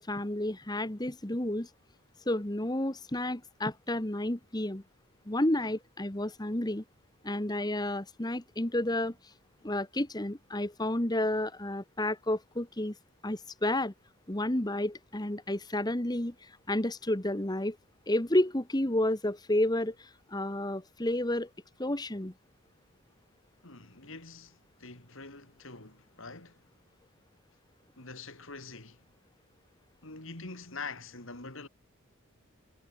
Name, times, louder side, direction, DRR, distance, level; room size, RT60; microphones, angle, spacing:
voice 1, 0.0-1.7 2.3-4.8 5.3-6.8 7.2-9.1 9.6-12.9 13.2-13.9 14.3-16.3 16.7-17.8 18.1-21.5 21.8-22.3, left 1 dB, 20° left, 1.4 m, -31 dB
voice 2, 23.6-26.6 28.0-29.0 30.0-31.7, left 3 dB, 60° left, 3.3 m, -45 dB
head